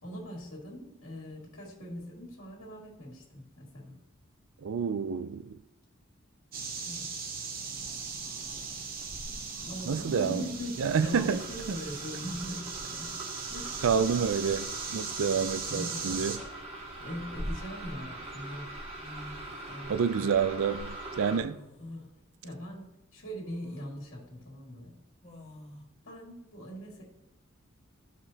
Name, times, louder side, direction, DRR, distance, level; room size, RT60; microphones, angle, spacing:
voice 1, 0.0-4.0 6.9-7.1 9.6-13.2 13.5-13.8 15.7-16.2 17.0-18.7 19.7-20.4 21.8-22.1 22.4-24.9 26.0-27.0, equal, 75° left, 2.0 m, -41 dB
voice 2, 4.6-5.6 9.9-10.4 10.8-11.4 11.7-11.8 13.8-16.4 19.9-21.6, right 6 dB, 80° right, 0.4 m, -28 dB
sound 1, 6.5-16.4, right 5 dB, 45° right, 0.7 m, -39 dB
sound 2, 7.8-21.4, right 1 dB, 30° right, 1.3 m, -43 dB
sound 3, 10.0-10.5 12.0-12.1 12.5-13.0 14.3-14.5 15.6-16.4 17.0-18.0 18.7-18.8 19.0-19.9 21.5-22.1 22.6-22.7 23.4-23.9 25.2-25.8, left 1 dB, 30° left, 1.3 m, -51 dB
13.5 x 5.0 x 2.8 m
head